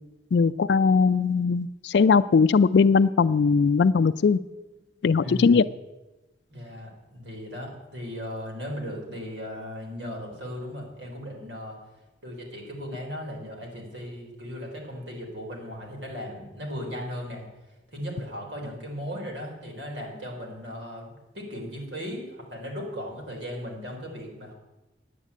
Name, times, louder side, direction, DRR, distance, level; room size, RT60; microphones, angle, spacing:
voice 1, 0.3-4.4 5.0-5.6, left 5 dB, 70° left, 11 dB, 0.4 m, -20 dB
voice 2, 5.2-5.6 6.5-11.8 12.2-17.5 17.9-24.5, equal, 90° right, -1 dB, 3.9 m, -37 dB
9.9 x 8.8 x 8.3 m, 1.1 s
head